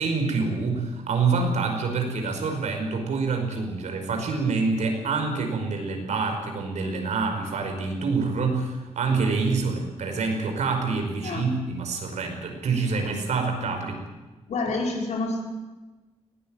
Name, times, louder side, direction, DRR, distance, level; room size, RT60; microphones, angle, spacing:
voice 1, 0.0-14.0, right 4 dB, 85° right, 4 dB, 5.3 m, -26 dB
voice 2, 14.5-15.4, left 3 dB, 80° left, 1 dB, 5.1 m, -28 dB
20.0 x 18.0 x 9.2 m, 1.2 s
wide cardioid pair, 175°, 12 cm